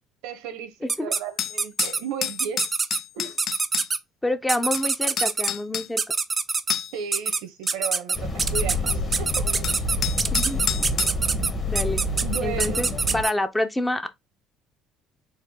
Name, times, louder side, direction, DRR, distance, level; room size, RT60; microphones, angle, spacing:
voice 1, 0.2-3.4 6.9-9.5 10.8-10.9 12.2-12.9, right 8 dB, 85° right, 1.0 m, -34 dB
voice 2, 0.8-1.1 4.2-6.1 10.3-10.6 11.0-11.1 11.7-12.0 12.4-14.1, left 1 dB, 10° left, 0.7 m, -27 dB
sound 1, 0.9-1.2 1.6-2.0 2.4-3.0 3.4-4.0 4.5-5.5 6.0-6.7 7.1-7.4 7.7-13.3, right 4 dB, 25° right, 0.5 m, -24 dB
sound 2, 1.2-3.9 4.7-4.8 5.2-5.9 6.7-7.1 7.6-7.7 8.9-9.0 9.6-11.1, left 10 dB, 50° left, 0.4 m, -29 dB
sound 3, 8.1-13.2, left 1 dB, 35° left, 1.6 m, -28 dB
4.4 x 2.7 x 3.8 m
supercardioid pair, 90°, 0 cm